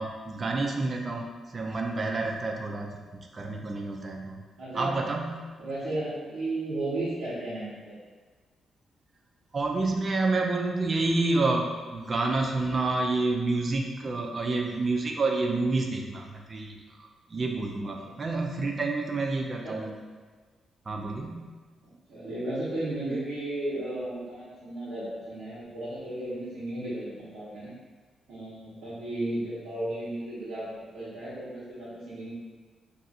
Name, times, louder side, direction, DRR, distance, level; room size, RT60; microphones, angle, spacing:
voice 1, 0.0-4.4 4.7-5.4 9.5-20.0 20.9-21.5, right 3 dB, 35° right, 1 dB, 0.4 m, -29 dB
voice 2, 4.6-4.9 5.6-8.0 18.0-18.1 19.6-19.7 22.1-27.7 28.3-32.3, right 1 dB, 85° right, -13 dB, 1.1 m, -34 dB
2.6 x 2.3 x 4.1 m, 1.4 s
cardioid pair, 105°, 0 cm